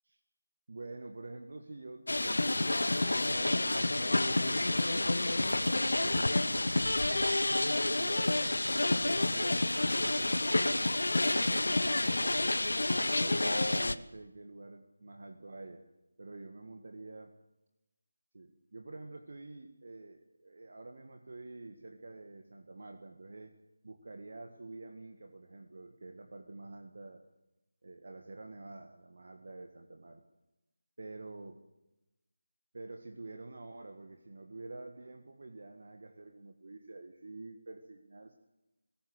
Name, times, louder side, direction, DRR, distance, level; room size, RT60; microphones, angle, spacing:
voice 1, 0.7-6.7 7.5-12.1 12.9-15.8 16.2-17.3 18.3-23.6 23.8-27.2 27.8-30.2 31.0-31.6 32.7-38.3, right 2 dB, 50° right, 4 dB, 1.7 m, -48 dB
sound 1, 2.1-13.9, left 2 dB, 65° left, 0.9 m, -29 dB
20.5 x 18.0 x 8.0 m, 0.99 s
figure-of-eight pair, 160°, 0 cm